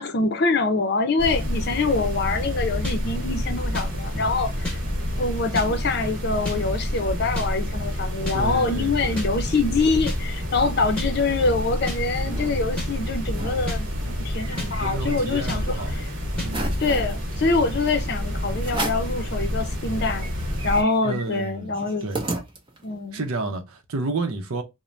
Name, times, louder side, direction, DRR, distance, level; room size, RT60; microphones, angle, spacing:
voice 1, 0.0-4.8 5.2-15.8 16.8-20.3 20.6-22.1 22.8-23.2, left 3 dB, 50° left, 0.5 m, -25 dB
sound 1, 1.2-20.8, equal, 60° right, 1.1 m, -28 dB
sound 2, 2.8-3.0 3.7-3.9 4.6-4.8 5.5-5.7 6.4-6.6 7.4-7.5 8.3-8.4 9.2-9.3 10.1-10.2 11.0-11.1 11.9-12.0 12.8-12.9 13.7-13.8 14.6-14.7 15.5-15.6 16.4-16.5, left 2 dB, 5° left, 0.9 m, -31 dB
voice 2, 8.3-9.3 14.8-15.9 16.4-16.8 21.0-22.2 23.1-24.6, right 3 dB, 90° right, 0.6 m, -31 dB
sound 3, 12.1-12.5 12.9-13.0 13.3-13.6 14.0-15.6 16.0-16.1 16.4-17.2 17.9-18.0 18.6-19.2 19.7-19.8 20.0-23.0, right 2 dB, 25° right, 0.5 m, -34 dB
3.1 x 2.1 x 2.5 m
head